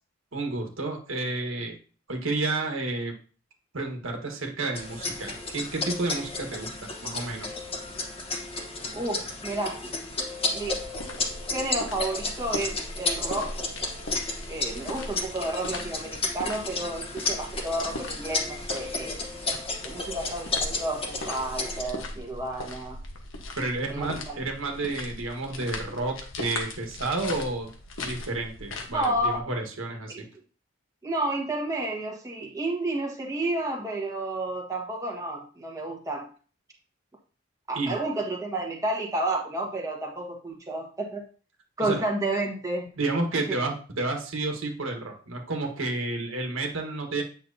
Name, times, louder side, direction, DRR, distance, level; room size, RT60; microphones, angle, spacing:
voice 1, 0.3-1.8 2.1-3.1 3.7-7.5 23.6-27.7 28.0-30.2 37.7-38.0 41.8-42.0 43.0-47.2, right 2 dB, 85° right, 2 dB, 1.5 m, -31 dB
sound 1, 4.7-21.8, left 3 dB, 30° left, 1.1 m, -33 dB
voice 2, 8.9-9.8 10.5-10.8 11.5-13.5 14.5-19.3 19.8-23.0 23.9-24.4 28.9-29.4 30.1-30.2 31.0-36.3 37.7-41.3 41.8-42.9, right 2 dB, 15° right, -1 dB, 1.3 m, -31 dB
sound 2, 10.6-29.4, left 2 dB, 80° left, 1.2 m, -40 dB
8.5 x 6.3 x 2.7 m, 0.39 s
head